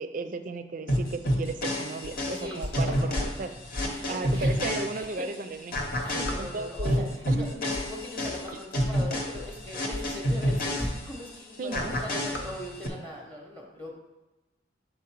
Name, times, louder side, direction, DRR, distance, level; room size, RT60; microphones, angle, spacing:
voice 1, 0.0-3.5 4.1-5.8 6.4-7.6 11.6-12.0, right 3 dB, 45° right, 9 dB, 0.4 m, -35 dB
sound 1, 0.9-5.3 5.7-11.3 11.7-12.9, equal, 50° left, 0.9 m, -29 dB
sound 2, 1.5-1.7 2.0-2.3 2.6-4.1 4.3-4.6 5.0-5.1 6.2-10.2 10.5-10.8 11.1-11.2, left 2 dB, 30° left, 0.3 m, -38 dB
sound 3, 2.1-3.9 4.5-4.6 5.3-7.0 7.6-7.8 8.1-9.7 10.2-10.3 10.5-10.6 10.9-11.2 11.5-13.1, left 1 dB, 85° left, 1.0 m, -42 dB
voice 2, 2.3-5.4 6.0-13.9, left 1 dB, 10° left, -1 dB, 0.8 m, -40 dB
6.5 x 3.7 x 4.6 m, 1.1 s
head